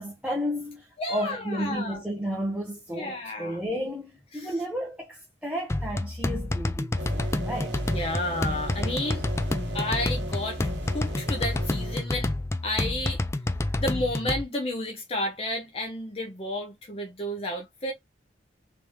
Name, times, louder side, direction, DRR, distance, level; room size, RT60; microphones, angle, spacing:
voice 1, 0.0-7.8, equal, 5° right, 0.8 m, -32 dB
voice 2, 1.0-2.0 2.9-3.6 4.3-4.5 7.9-9.2 9.7-12.3 12.6-13.2 13.8-17.9, left 1 dB, 35° left, 0.7 m, -31 dB
sound 1, 5.7-14.4, left 2 dB, 15° left, 0.3 m, -29 dB
sound 2, 7.0-12.0, right 3 dB, 80° right, 1.1 m, -38 dB
3.4 x 3.2 x 3.0 m
head